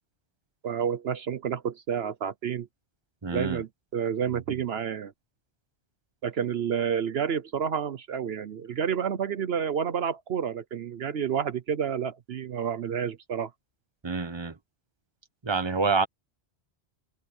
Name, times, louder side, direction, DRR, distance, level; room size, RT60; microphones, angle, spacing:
voice 1, 0.6-2.7 3.3-5.1 6.2-13.5, right 8 dB, 70° right, 1.0 m, -29 dB
voice 2, 3.2-3.6 14.0-14.5 15.4-16.1, right 4 dB, 25° right, 1.2 m, -27 dB
open air
omnidirectional pair, 1.1 m